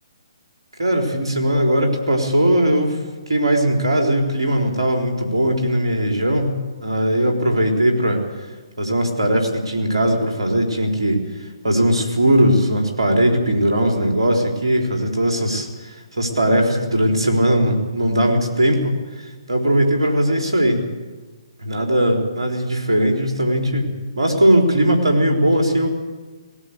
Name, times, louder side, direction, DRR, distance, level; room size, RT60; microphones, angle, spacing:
voice 1, 0.8-3.0 3.3-6.5 6.8-8.2 8.8-11.2 11.6-18.9 19.5-20.8 21.6-25.9, right 1 dB, 70° right, 2 dB, 4.3 m, -19 dB
18.5 x 17.0 x 8.4 m, 1.3 s
figure-of-eight pair, 135°, 3 cm